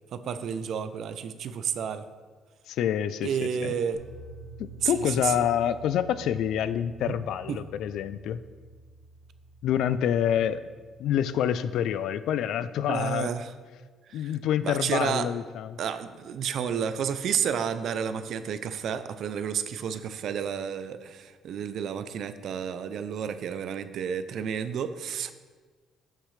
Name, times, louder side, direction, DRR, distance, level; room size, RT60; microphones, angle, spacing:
voice 1, 0.1-2.1 3.2-4.0 4.8-5.3 7.0-7.2 12.9-13.5 14.1-14.3 14.6-15.3 15.8-25.3, right 7 dB, 55° right, 11 dB, 0.5 m, -31 dB
voice 2, 2.7-3.7 4.6-8.4 9.6-10.6 11.0-13.3 14.1-15.8, left 9 dB, 70° left, 14 dB, 0.4 m, -27 dB
sound 1, 3.9-12.1, right 3 dB, 85° left, 2.5 m, -49 dB
12.0 x 6.5 x 3.3 m, 1.5 s
cardioid pair, 155°, 0 cm